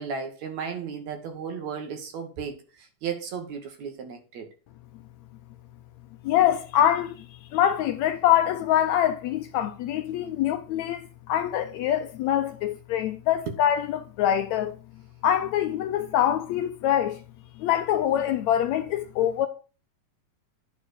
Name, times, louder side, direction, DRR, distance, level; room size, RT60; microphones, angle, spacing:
voice 1, 0.0-4.5 13.5-13.6, right 6 dB, 65° right, 2.6 m, -34 dB
voice 2, 6.2-14.8 15.2-17.2 17.6-19.5, left 11 dB, 75° left, 1.8 m, -24 dB
9.8 x 4.1 x 6.3 m
omnidirectional pair, 3.6 m